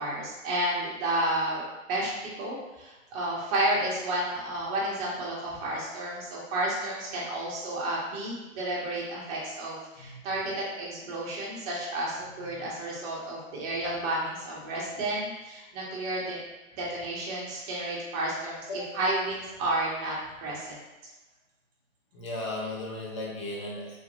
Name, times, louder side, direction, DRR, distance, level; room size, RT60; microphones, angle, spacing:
voice 1, 0.0-16.4 16.7-20.8, right 1 dB, 30° right, -5 dB, 0.9 m, -31 dB
voice 2, 12.4-12.7 18.7-18.9 22.1-24.0, left 1 dB, 25° left, -3 dB, 0.4 m, -36 dB
3.1 x 2.2 x 2.8 m, 1.1 s
hypercardioid pair, 130°, 41 cm